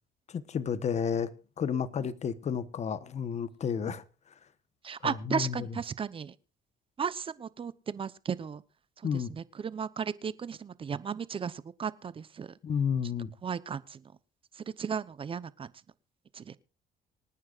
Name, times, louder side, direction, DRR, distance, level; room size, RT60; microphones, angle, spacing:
voice 1, 0.3-1.3 1.6-4.0 5.0-5.6 9.0-9.3 12.6-13.3, left 7 dB, 40° left, 1.1 m, -31 dB
voice 2, 4.8-6.3 7.0-8.6 9.0-12.5 13.4-14.1 14.5-15.7 16.3-16.6, right 6 dB, 30° right, 0.9 m, -35 dB
25.5 x 9.5 x 2.5 m
cardioid pair, 110°, 17 cm